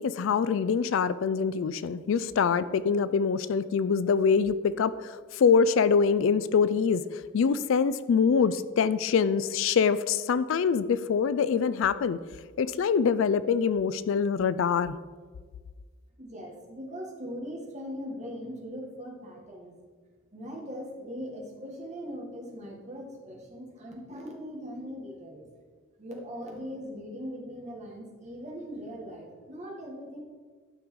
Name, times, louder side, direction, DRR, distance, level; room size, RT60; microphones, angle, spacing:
voice 1, 0.0-12.2 12.6-15.0, left 6 dB, 60° left, 16 dB, 0.3 m, -25 dB
voice 2, 16.2-19.8 20.3-25.5 26.0-30.2, equal, 30° right, -1 dB, 1.9 m, -40 dB
12.0 x 5.3 x 4.7 m, 1.5 s
head